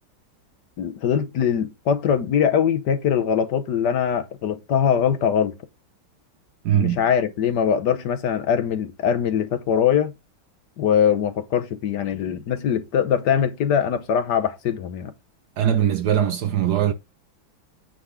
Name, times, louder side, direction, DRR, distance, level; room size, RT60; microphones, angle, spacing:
voice 1, 0.8-5.5 6.8-10.1 10.8-15.1, left 8 dB, 65° left, 1.4 m, -22 dB
voice 2, 6.6-7.0 15.6-16.9, right 9 dB, 70° right, 1.0 m, -20 dB
9.0 x 4.0 x 4.9 m
omnidirectional pair, 2.2 m